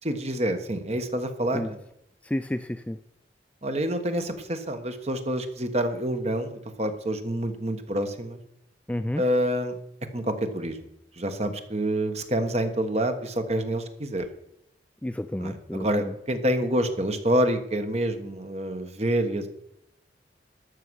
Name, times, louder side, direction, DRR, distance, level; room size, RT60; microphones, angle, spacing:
voice 1, 0.0-1.8 3.6-8.4 9.2-9.7 10.1-10.8 11.2-14.3 15.4-19.5, right 1 dB, 35° right, 8 dB, 1.3 m, -27 dB
voice 2, 2.2-3.0 8.9-9.2 15.0-16.1, left 1 dB, 10° left, 10 dB, 0.3 m, -30 dB
12.5 x 6.6 x 6.3 m, 0.78 s
head